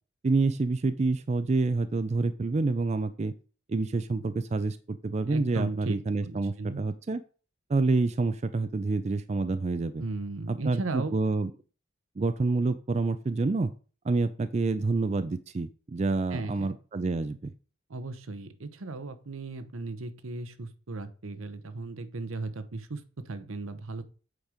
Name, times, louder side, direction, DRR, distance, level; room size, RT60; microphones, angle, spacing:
voice 1, 0.2-3.3 3.7-7.2 7.7-10.0 10.5-11.5 12.2-13.7 14.0-17.5, right 3 dB, 30° right, 12 dB, 0.4 m, -28 dB
voice 2, 5.3-6.8 10.0-11.1 16.3-16.7 17.9-24.0, right 3 dB, 80° right, 12 dB, 0.8 m, -36 dB
8.0 x 5.2 x 4.9 m, 0.38 s
head